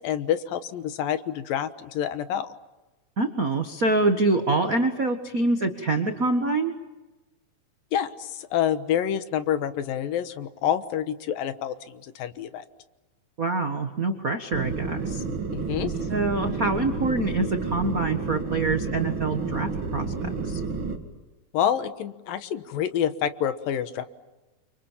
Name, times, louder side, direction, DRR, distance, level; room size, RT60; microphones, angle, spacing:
voice 1, 0.0-2.5 7.9-12.6 15.5-15.9 21.5-24.1, left 9 dB, 75° left, 11 dB, 2.9 m, -27 dB
voice 2, 3.2-6.7 13.4-15.2 16.1-20.6, right 2 dB, 55° right, 6 dB, 0.9 m, -25 dB
sound 1, 14.5-21.0, right 4 dB, 40° right, 2.6 m, -30 dB
30.0 x 26.0 x 7.4 m, 1.1 s
omnidirectional pair, 4.2 m